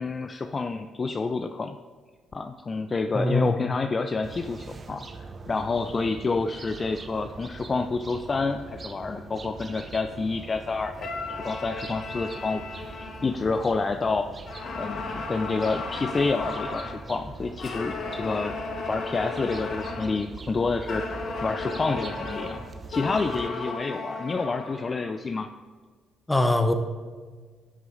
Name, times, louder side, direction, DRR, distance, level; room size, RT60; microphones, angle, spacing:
voice 1, 0.0-1.8 2.3-14.3 14.8-18.6 18.9-22.6 22.9-25.5, left 4 dB, 35° left, 7 dB, 0.5 m, -29 dB
voice 2, 3.1-3.6 26.3-26.7, left 1 dB, 15° left, 7 dB, 1.2 m, -22 dB
sound 1, 4.2-23.5, right 3 dB, 40° right, 0.8 m, -43 dB
sound 2, 11.0-14.0 14.4-17.0 17.6-20.2 20.9-25.1, left 3 dB, 60° left, 1.4 m, -35 dB
10.5 x 6.4 x 4.0 m, 1.5 s
supercardioid pair, 65°, 0 cm